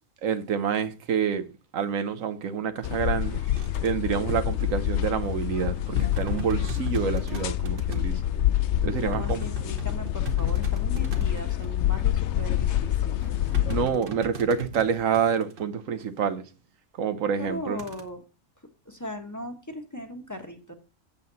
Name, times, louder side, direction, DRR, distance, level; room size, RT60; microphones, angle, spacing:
voice 1, 0.2-1.5 1.7-3.4 3.8-8.2 8.8-9.4 13.7-16.5 17.0-17.8, right 7 dB, 85° right, 1.3 m, -27 dB
sound 1, 2.8-13.9, left 12 dB, 65° left, 0.9 m, -27 dB
sound 2, 3.2-4.7 5.6-8.0 8.8-11.7 13.2-15.6 17.8-18.0, right 7 dB, 45° right, 1.3 m, -40 dB
voice 2, 9.0-13.2 17.4-18.2 18.8-20.7, left 1 dB, 15° left, 1.4 m, -38 dB
8.5 x 7.6 x 4.0 m
omnidirectional pair, 1.3 m